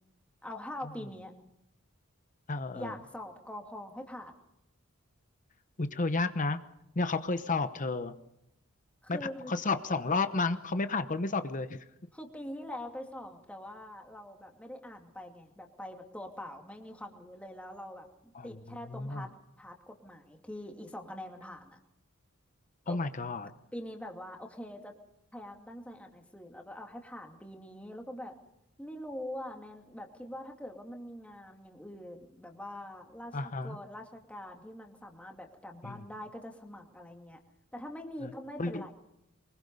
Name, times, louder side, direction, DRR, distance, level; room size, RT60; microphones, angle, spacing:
voice 1, 0.4-1.3 2.7-4.3 9.0-9.5 12.1-19.3 19.6-21.8 22.9-23.0 23.7-24.9 25.3-28.3 28.8-37.4 37.7-38.9, left 1 dB, 5° left, 2 dB, 2.5 m, -44 dB
voice 2, 2.5-2.9 5.8-6.6 7.0-8.1 9.1-9.2 9.5-11.8 18.3-18.6 18.9-19.3 22.9-23.5 33.3-33.8 35.8-36.0 38.2-38.3 38.6-38.9, left 3 dB, 40° left, 10 dB, 0.9 m, -31 dB
23.5 x 21.5 x 5.5 m, 0.83 s
head